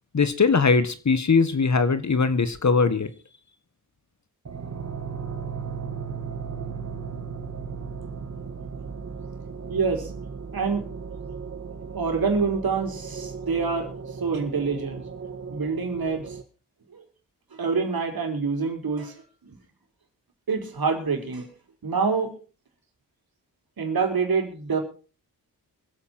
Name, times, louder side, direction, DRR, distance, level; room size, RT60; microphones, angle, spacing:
voice 1, 0.1-3.1, left 4 dB, 40° left, 12 dB, 1.6 m, -21 dB
sound 1, 4.4-16.4, right 5 dB, 40° right, 1.7 m, -36 dB
voice 2, 9.7-10.1 10.5-10.8 11.9-13.9 14.2-15.0 15.5-16.4 16.9-17.0 17.6-19.1 19.4-19.5 20.5-21.5 21.8-22.3 23.8-24.8, right 5 dB, 60° right, 4 dB, 4.2 m, -26 dB
24.5 x 8.4 x 4.4 m, 0.37 s
supercardioid pair, 45°, 41 cm